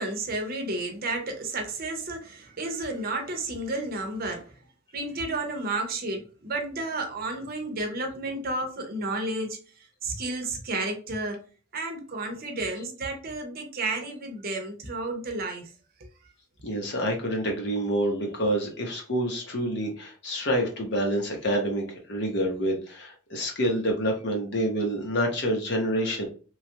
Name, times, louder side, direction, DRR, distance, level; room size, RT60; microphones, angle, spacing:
voice 1, 0.0-4.5 4.9-9.6 10.0-11.4 11.7-15.7, right 2 dB, 45° right, 0.7 m, -32 dB
voice 2, 16.6-26.2, equal, 55° left, 0.9 m, -27 dB
3.1 x 2.4 x 2.7 m
head